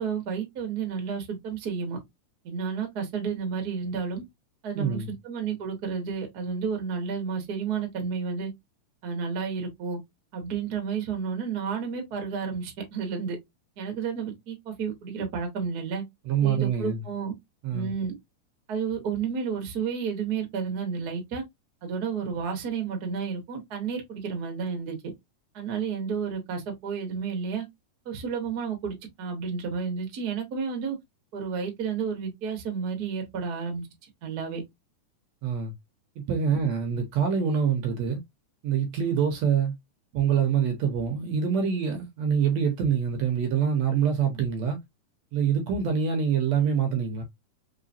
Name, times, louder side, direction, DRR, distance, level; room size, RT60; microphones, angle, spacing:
voice 1, 0.0-2.0 2.4-4.2 4.6-8.5 9.0-10.0 10.3-13.4 13.8-16.0 16.4-17.3 17.7-18.1 18.7-21.4 21.8-25.0 25.5-27.6 28.0-31.0 31.3-33.8 34.2-34.6 36.5-36.6, right 6 dB, 45° right, 1.3 m, -31 dB
voice 2, 4.8-5.1 16.3-17.0 17.6-17.9 35.4-35.7 36.2-38.2 38.6-39.8 40.1-44.8 45.3-47.2, right 7 dB, 70° right, 1.9 m, -25 dB
4.8 x 3.5 x 2.6 m
omnidirectional pair, 3.6 m